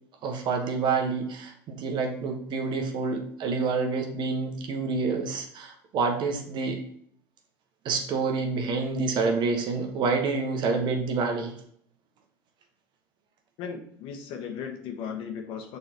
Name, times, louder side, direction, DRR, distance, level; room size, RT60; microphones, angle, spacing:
voice 1, 0.2-6.8 7.8-11.5, right 4 dB, 50° right, 4 dB, 1.4 m, -28 dB
voice 2, 13.6-15.8, left 7 dB, 60° left, 4 dB, 1.3 m, -36 dB
6.7 x 4.0 x 4.5 m, 0.65 s
hypercardioid pair, 85°, 10 cm